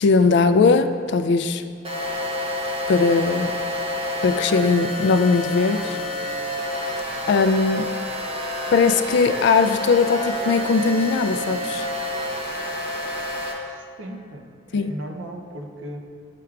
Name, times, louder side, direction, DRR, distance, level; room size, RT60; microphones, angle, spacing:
voice 1, 0.0-1.6 2.9-3.6 4.2-6.0 7.3-7.9 8.7-11.9 14.7-14.9, left 4 dB, 65° left, 10 dB, 0.3 m, -19 dB
sound 1, 1.8-13.5, left 1 dB, 30° right, 0.8 m, -28 dB
voice 2, 13.7-16.0, right 1 dB, 85° right, 3 dB, 0.6 m, -37 dB
9.7 x 4.6 x 2.4 m, 2.3 s
head